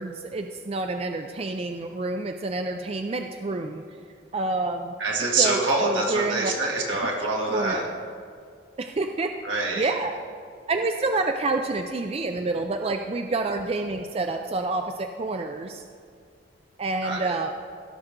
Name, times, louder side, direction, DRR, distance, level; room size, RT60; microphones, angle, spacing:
voice 1, 0.0-3.8 4.3-4.9 5.4-6.5 7.5-7.9 8.8-9.4 9.7-10.1 10.7-15.8 16.8-17.5, right 3 dB, 30° right, 5 dB, 0.4 m, -28 dB
voice 2, 5.0-7.9 9.4-9.9 17.0-17.3, right 3 dB, 80° right, -2 dB, 2.1 m, -25 dB
16.0 x 6.5 x 3.7 m, 2.2 s
head